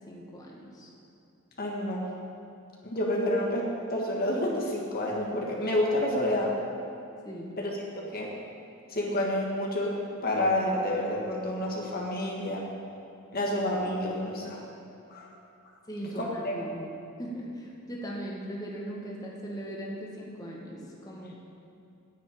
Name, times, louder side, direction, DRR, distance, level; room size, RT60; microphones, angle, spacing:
voice 1, 0.1-0.9 7.2-7.6 15.9-16.9 17.2-21.4, equal, 20° left, -3 dB, 1.8 m, -39 dB
voice 2, 1.6-2.1 2.8-3.6 3.9-6.5 7.6-7.8 8.1-8.3 8.9-10.0 10.2-12.6 13.3-14.6 15.1-15.3 16.1-16.7, left 1 dB, 50° left, -2 dB, 1.6 m, -29 dB
9.8 x 7.7 x 9.0 m, 2.6 s
head